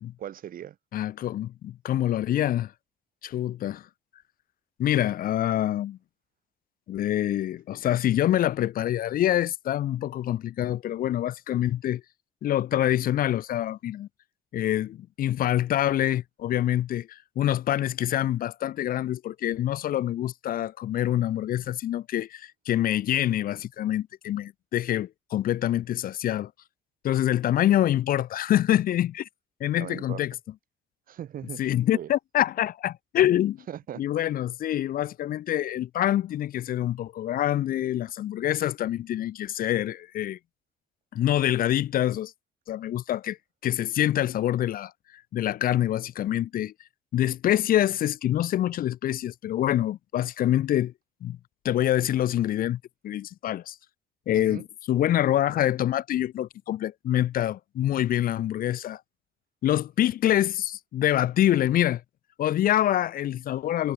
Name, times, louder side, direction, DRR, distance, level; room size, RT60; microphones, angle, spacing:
voice 1, 0.2-0.8 29.8-30.2 31.1-31.6 31.9-32.1 33.7-34.0 54.3-54.6, right 10 dB, 55° right, 5.3 m, -38 dB
voice 2, 0.9-2.7 3.2-3.9 4.8-6.0 6.9-12.0 12.4-14.1 14.5-26.5 27.0-29.3 29.6-30.3 31.6-33.6 34.0-40.4 41.1-42.3 42.7-43.4 43.6-44.9 45.3-46.7 47.1-50.9 51.2-51.4 51.6-53.8 54.3-59.0 59.6-62.0 62.4-63.9, left 12 dB, 60° left, 1.0 m, -26 dB
cardioid pair, 110°, 17 cm